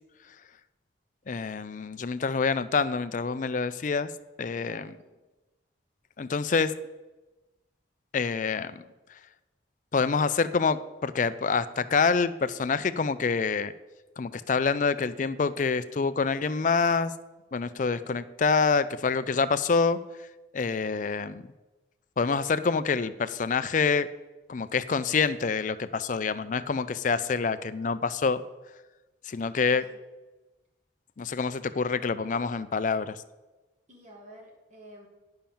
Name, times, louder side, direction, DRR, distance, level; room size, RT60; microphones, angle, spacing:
voice 1, 1.3-4.1 4.4-4.9 6.2-6.7 8.1-8.8 9.9-13.7 14.2-17.1 17.5-20.0 20.5-21.4 22.2-24.1 24.5-28.4 29.3-29.8 31.2-33.2, left 5 dB, 40° left, 13 dB, 0.4 m, -26 dB
voice 2, 4.5-5.0 29.5-30.0 33.9-35.1, right 1 dB, 40° right, -1 dB, 2.3 m, -50 dB
9.1 x 5.7 x 7.1 m, 1.1 s
head